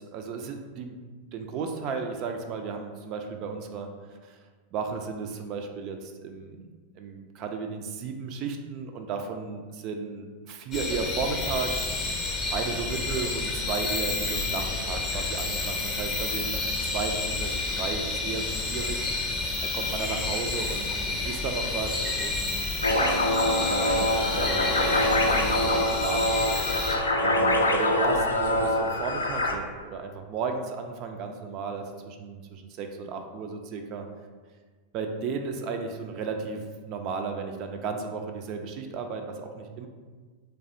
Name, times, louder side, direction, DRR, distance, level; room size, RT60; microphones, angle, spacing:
voice 1, 0.1-1.0 1.3-4.4 4.7-6.6 7.0-11.9 12.5-16.6 16.9-19.0 19.6-25.0 25.3-26.4 27.2-34.1 34.9-39.9, right 5 dB, 40° right, 5 dB, 0.3 m, -34 dB
sound 1, 10.7-27.0, left 3 dB, 20° left, 0.6 m, -30 dB
sound 2, 22.8-29.5, left 1 dB, 80° left, 0.3 m, -24 dB
3.3 x 3.3 x 2.5 m, 1.5 s
figure-of-eight pair, 90°, 0 cm